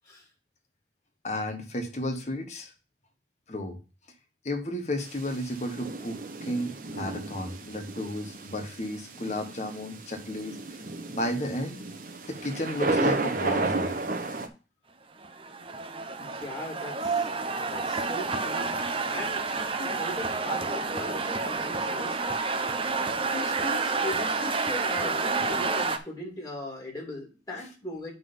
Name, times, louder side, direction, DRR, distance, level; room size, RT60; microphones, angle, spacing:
voice 1, 1.2-2.7 3.5-3.8 4.4-10.6 11.1-11.8 12.3-14.0 25.0-25.6, left 1 dB, 40° left, 5 dB, 1.3 m, -33 dB
sound 1, 5.0-14.5, right 3 dB, 45° right, 1.0 m, -33 dB
sound 2, 15.2-26.0, right 4 dB, 30° right, 0.7 m, -29 dB
voice 2, 16.2-17.3 17.7-18.8 19.1-22.2 23.0-28.1, left 1 dB, 20° left, -1 dB, 3.1 m, -39 dB
9.4 x 3.9 x 5.5 m, 0.33 s
head